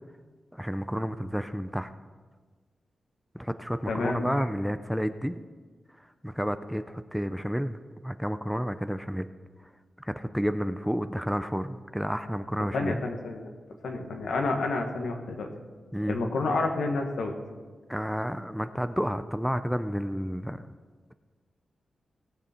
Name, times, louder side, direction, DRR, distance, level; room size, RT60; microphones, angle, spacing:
voice 1, 0.5-1.9 3.3-5.4 6.2-9.3 10.0-12.9 15.9-16.2 17.9-20.7, equal, ahead, 11 dB, 0.4 m, -31 dB
voice 2, 3.9-4.5 12.7-13.5 13.8-15.5 16.1-17.3, left 3 dB, 80° left, 4 dB, 1.3 m, -29 dB
17.5 x 6.8 x 4.3 m, 1.4 s
wide cardioid pair, 105°, 0 cm